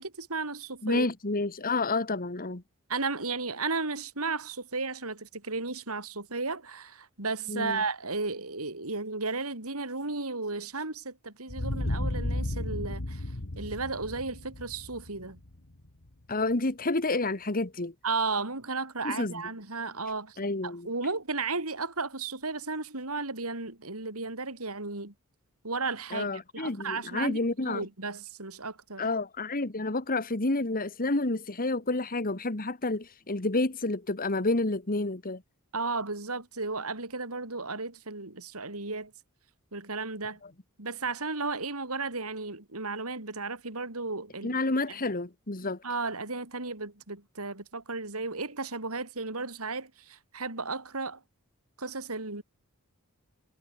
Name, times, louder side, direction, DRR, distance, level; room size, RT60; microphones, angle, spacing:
voice 1, 0.0-1.0 2.9-13.2 13.6-15.4 18.0-20.4 20.6-25.1 25.6-26.3 26.5-27.4 27.7-29.0 35.7-39.1 39.7-40.4 40.8-44.6 45.8-51.2 51.8-52.4, right 3 dB, 75° right, 4.5 m, -34 dB
voice 2, 0.8-2.6 7.5-7.8 16.3-17.9 19.0-19.4 20.4-20.9 26.1-27.9 29.0-35.4 40.4-40.5 44.4-45.8, left 2 dB, 40° left, 1.7 m, -29 dB
sound 1, 11.5-16.1, left 1 dB, 60° left, 1.8 m, -34 dB
head